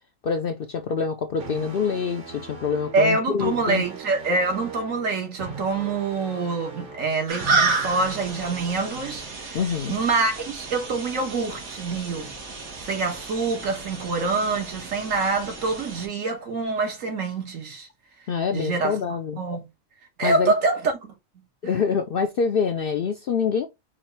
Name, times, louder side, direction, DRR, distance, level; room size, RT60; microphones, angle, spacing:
voice 1, 0.2-3.8 9.5-10.0 18.3-19.4 20.2-20.5 21.6-23.7, left 6 dB, 60° left, 0.6 m, -25 dB
sound 1, 1.4-9.4, right 5 dB, 45° right, 1.0 m, -40 dB
voice 2, 2.9-9.6 9.9-12.3 12.8-17.9 18.5-19.0 19.4-19.6 20.2-20.9 21.6-21.7, right 3 dB, 75° right, 1.5 m, -25 dB
sound 2, 7.3-16.1, right 3 dB, 90° right, 1.8 m, -31 dB
5.0 x 2.4 x 4.2 m
omnidirectional pair, 1.4 m